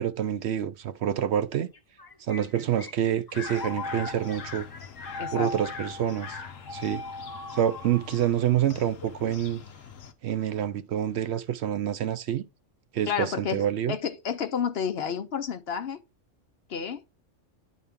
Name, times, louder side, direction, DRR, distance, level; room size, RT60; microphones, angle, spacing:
voice 1, 0.0-1.7 2.2-4.7 5.3-6.4 6.7-7.0 7.5-9.6 10.2-12.4 12.9-14.0, right 10 dB, 65° right, 0.7 m, -27 dB
sound 1, 1.7-9.3, left 2 dB, 25° left, 0.5 m, -40 dB
sound 2, 3.3-10.1, left 6 dB, 85° left, 1.3 m, -43 dB
voice 2, 5.2-5.5 13.1-16.0 16.7-17.0, left 7 dB, 60° left, 0.9 m, -30 dB
10.0 x 4.2 x 3.5 m
omnidirectional pair, 1.3 m